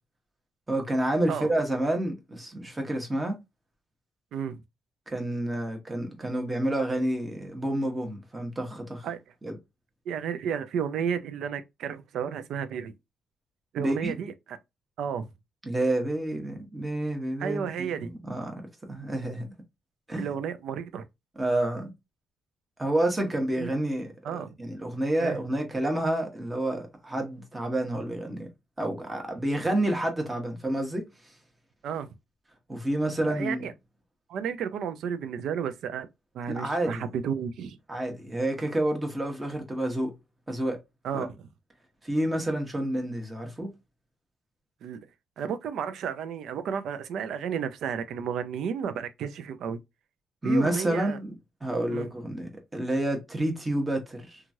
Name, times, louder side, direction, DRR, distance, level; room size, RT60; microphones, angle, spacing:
voice 1, 0.7-3.4 5.1-9.1 9.4-9.5 13.8-14.1 15.6-19.5 20.1-20.3 21.4-21.9 22.8-28.5 28.8-31.3 32.7-33.7 36.5-37.1 37.9-40.1 40.5-40.8 41.1-41.3 42.0-43.7 50.4-51.4 51.6-54.4, right 1 dB, 15° right, 1.0 m, -29 dB
voice 2, 4.3-4.6 9.0-9.2 10.1-12.9 13.7-14.6 15.0-15.3 17.4-18.1 20.2-21.1 23.6-23.7 24.2-24.6 25.2-25.4 31.8-32.1 33.3-33.7 34.3-36.1 36.3-37.8 41.0-41.4 44.8-45.0 45.4-49.8 50.4-51.2 51.9-52.1, right 7 dB, 75° right, 0.4 m, -32 dB
3.0 x 2.3 x 2.6 m
cardioid pair, 90°, 0 cm